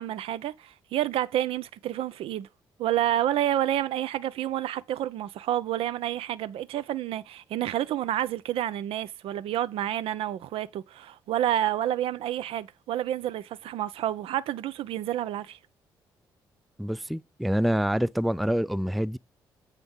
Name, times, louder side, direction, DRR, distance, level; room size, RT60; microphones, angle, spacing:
voice 1, 0.0-2.5 2.8-15.6, right 12 dB, 60° right, 0.6 m, -29 dB
voice 2, 16.8-19.2, equal, ahead, 0.4 m, -26 dB
8.0 x 3.4 x 5.4 m
figure-of-eight pair, 45°, 11 cm